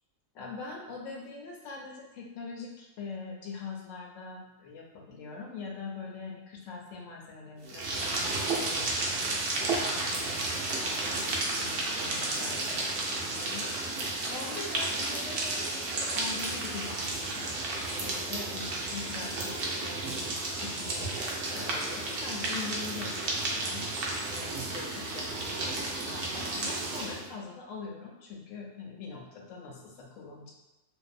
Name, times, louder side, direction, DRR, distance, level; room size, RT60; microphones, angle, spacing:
voice 1, 0.3-17.5 17.9-30.5, left 4 dB, 75° left, -1 dB, 0.9 m, -43 dB
sound 1, 7.6-27.3, right 2 dB, 65° right, 0.6 m, -32 dB
2.6 x 2.0 x 2.4 m, 1.0 s
omnidirectional pair, 1.4 m